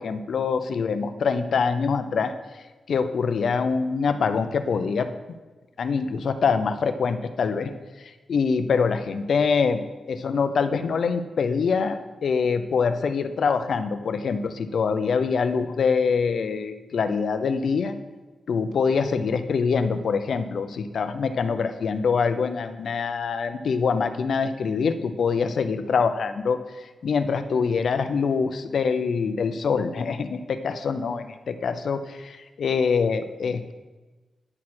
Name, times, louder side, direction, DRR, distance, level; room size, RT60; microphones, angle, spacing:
voice 1, 0.0-2.3 2.9-5.1 5.8-7.7 8.0-9.8 10.1-18.0 18.5-33.7, left 5 dB, 65° left, 9 dB, 0.5 m, -24 dB
9.9 x 6.4 x 4.3 m, 1.2 s
wide cardioid pair, 140°, 0 cm